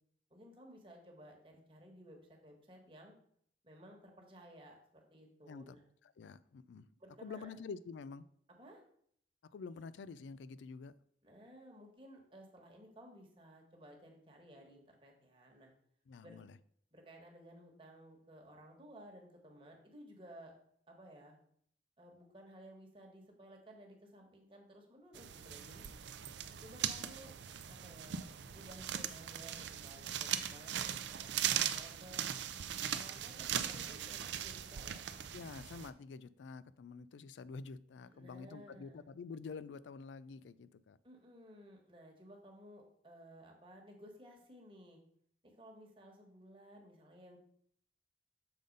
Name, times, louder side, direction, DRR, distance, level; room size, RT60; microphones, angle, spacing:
voice 1, 0.3-3.1 3.6-5.8 7.0-7.7 8.5-8.8 11.2-15.7 16.2-16.4 16.9-20.5 20.9-21.4 22.0-25.9 26.6-27.3 27.7-32.3 32.9-35.1 38.1-39.0 41.0-45.0 45.4-47.4, equal, 30° right, 1 dB, 1.3 m, -56 dB
voice 2, 6.0-6.9 7.2-8.3 9.5-10.9 16.1-16.6 35.3-41.0, left 4 dB, 85° left, 17 dB, 0.4 m, -48 dB
sound 1, 25.1-35.9, right 9 dB, 75° right, 0.5 m, -39 dB
6.8 x 3.9 x 5.2 m, 0.66 s
head